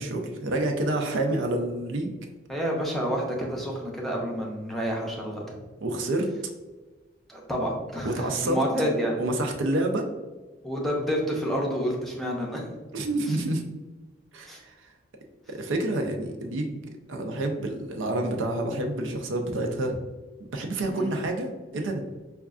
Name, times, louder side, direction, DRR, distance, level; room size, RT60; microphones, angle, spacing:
voice 1, 0.0-2.2 5.8-6.3 8.0-8.6 9.2-10.1 12.9-13.6 14.3-14.7 15.5-16.8 17.1-19.9 20.5-22.0, right 1 dB, 85° right, 4 dB, 0.5 m, -28 dB
voice 2, 2.5-5.6 7.3-9.2 10.6-12.8 13.3-13.4 14.5-14.6 20.9-21.1, equal, ahead, -2 dB, 0.5 m, -29 dB
5.0 x 2.3 x 2.4 m, 1.3 s
head